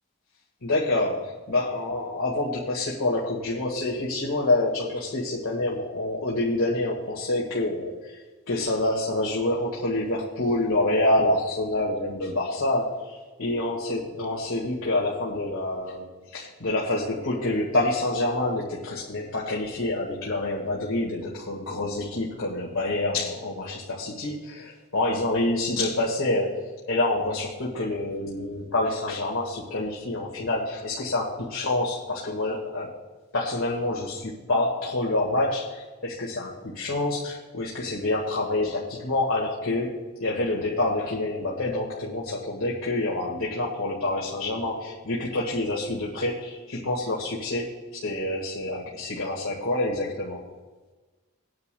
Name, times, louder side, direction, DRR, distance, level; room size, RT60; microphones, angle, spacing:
voice 1, 0.6-8.2 8.5-26.6 26.9-32.9 33.3-39.9 40.2-50.4, left 2 dB, 70° left, -4 dB, 1.8 m, -27 dB
20.5 x 9.6 x 2.3 m, 1.3 s
head